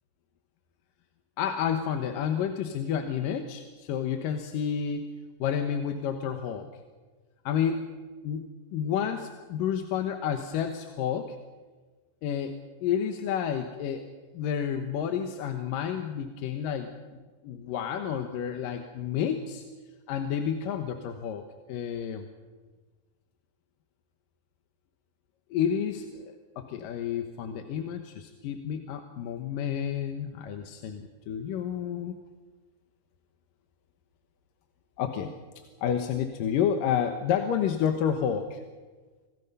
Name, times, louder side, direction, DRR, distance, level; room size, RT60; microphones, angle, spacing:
voice 1, 1.4-5.1 5.4-6.7 7.5-7.8 8.2-8.5 8.7-11.4 12.2-14.1 14.3-16.9 17.4-19.6 20.1-21.4 21.7-22.3 25.5-32.2 35.0-35.3 35.8-38.6, left 8 dB, 85° left, 6 dB, 2.8 m, -30 dB
26.0 x 19.0 x 5.5 m, 1.3 s
omnidirectional pair, 3.8 m